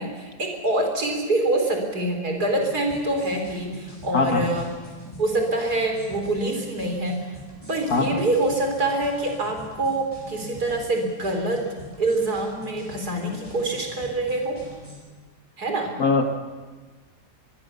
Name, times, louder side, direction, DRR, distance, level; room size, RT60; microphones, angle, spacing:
voice 1, 0.0-4.7 5.2-7.2 7.7-11.7 12.0-14.6 15.6-16.0, right 2 dB, 60° right, 3 dB, 4.6 m, -25 dB
sound 1, 2.4-15.0, left 1 dB, 20° left, 8.2 m, -44 dB
voice 2, 4.1-4.5 7.9-8.2 16.0-16.4, left 3 dB, 60° left, 4 dB, 2.4 m, -22 dB
24.0 x 22.0 x 7.0 m, 1.3 s
omnidirectional pair, 1.8 m